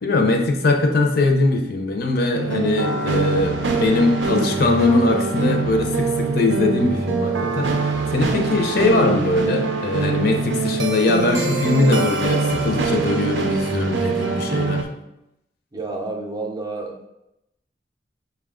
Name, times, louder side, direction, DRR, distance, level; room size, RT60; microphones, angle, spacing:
voice 1, 0.0-14.9, left 2 dB, 60° left, 4 dB, 0.6 m, -21 dB
sound 1, 2.3-14.8, right 4 dB, 85° right, 0.5 m, -23 dB
voice 2, 15.7-17.1, right 3 dB, 25° right, 2 dB, 0.5 m, -30 dB
5.6 x 2.3 x 3.5 m, 0.88 s
head